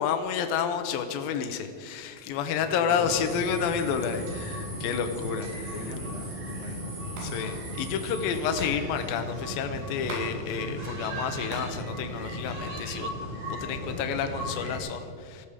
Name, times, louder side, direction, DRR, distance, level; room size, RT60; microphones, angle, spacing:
voice 1, 0.0-6.0 7.2-13.1 13.5-15.5, left 7 dB, 85° left, 7 dB, 2.0 m, -30 dB
voice 2, 2.6-3.4 5.7-7.0 7.2-7.5, left 2 dB, 50° left, 0 dB, 2.3 m, -40 dB
sound 1, 2.9-14.8, equal, 40° right, 5.1 m, -36 dB
Hands, 7.2-7.3 7.6-7.7 7.9-10.3 10.6-11.8 12.1-12.9 13.5-14.1, right 2 dB, 75° right, 5.8 m, -42 dB
sound 2, 9.7-14.7, equal, 30° left, 3.3 m, -48 dB
19.0 x 15.0 x 4.9 m, 2.3 s
omnidirectional pair, 5.5 m